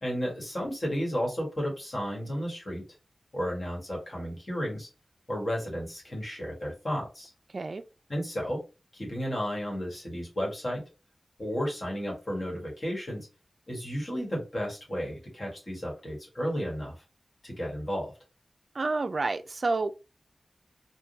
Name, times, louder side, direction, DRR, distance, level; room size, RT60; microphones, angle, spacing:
voice 1, 0.0-2.8 3.3-4.9 5.3-7.3 8.1-8.6 8.9-10.8 11.4-13.3 13.7-17.0 17.4-18.1, equal, 40° left, 1.6 m, -33 dB
voice 2, 18.8-19.9, right 3 dB, 55° right, 0.3 m, -29 dB
3.6 x 2.4 x 2.6 m
wide cardioid pair, 90°, 0 cm